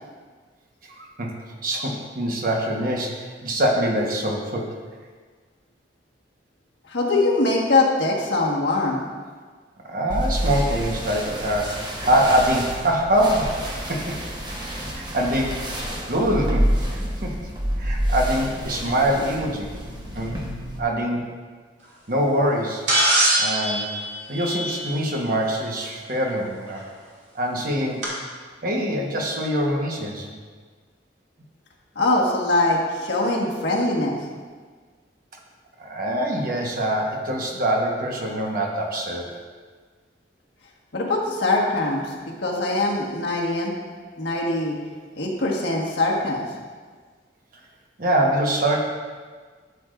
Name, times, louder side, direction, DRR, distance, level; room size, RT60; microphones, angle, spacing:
voice 1, 1.0-1.3 1.6-4.7 9.8-13.6 13.8-14.2 14.6-14.7 14.9-15.6 16.1-16.7 16.9-17.3 17.8-19.7 20.1-20.3 20.8-21.2 22.1-22.9 23.4-23.9 24.3-26.8 27.3-28.0 28.6-30.3 35.8-39.3 48.0-48.9, right 1 dB, 50° right, 0 dB, 1.1 m, -24 dB
voice 2, 6.9-9.0 31.9-34.2 40.9-43.7 44.2-44.7 45.2-46.5, left 2 dB, 80° left, -3 dB, 1.5 m, -22 dB
sound 1, 10.1-20.8, equal, 25° right, 1.1 m, -28 dB
sound 2, 22.9-25.2 26.8-26.9 28.0-28.1, right 1 dB, 75° right, 2.3 m, -22 dB
12.0 x 7.1 x 2.5 m, 1.5 s
head